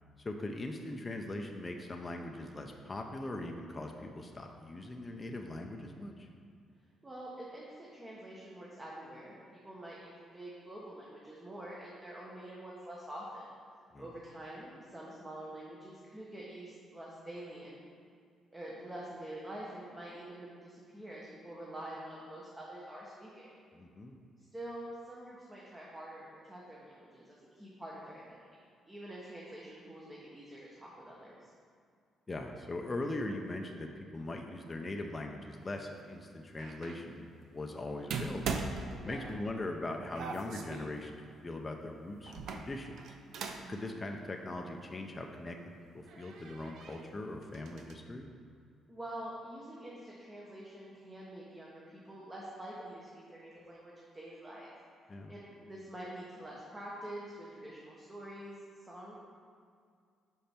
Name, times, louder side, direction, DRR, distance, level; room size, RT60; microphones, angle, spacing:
voice 1, 0.2-6.3 13.9-14.1 23.7-24.2 32.3-38.5 39.0-43.1 43.7-48.3 55.1-55.3, left 2 dB, 25° left, 2 dB, 0.5 m, -41 dB
voice 2, 7.0-13.5 14.0-17.8 18.5-23.5 24.4-28.6 28.9-31.5 39.0-39.3 43.6-43.9 48.9-54.7 55.3-59.1, right 1 dB, 20° right, -5 dB, 1.0 m, -46 dB
sound 1, 36.6-37.0 38.1-39.6 40.1-41.0 42.2-43.8 44.1-44.2 45.4-45.5 46.0-47.1 47.4-47.9, right 4 dB, 75° right, 0.5 m, -40 dB
5.4 x 5.1 x 4.4 m, 2.2 s
cardioid pair, 90°, 0 cm